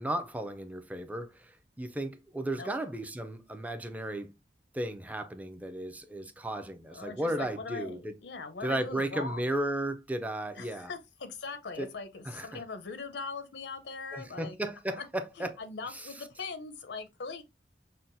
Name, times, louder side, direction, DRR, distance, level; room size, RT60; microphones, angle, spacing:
voice 1, 0.0-4.3 4.7-8.1 8.6-10.9 11.8-11.9 12.3-12.6 14.1-15.5, right 1 dB, 10° right, 0.4 m, -34 dB
voice 2, 6.9-9.5 10.6-14.6 15.0-15.1 15.4-17.4, left 4 dB, 80° left, 0.6 m, -41 dB
5.5 x 2.2 x 2.5 m
head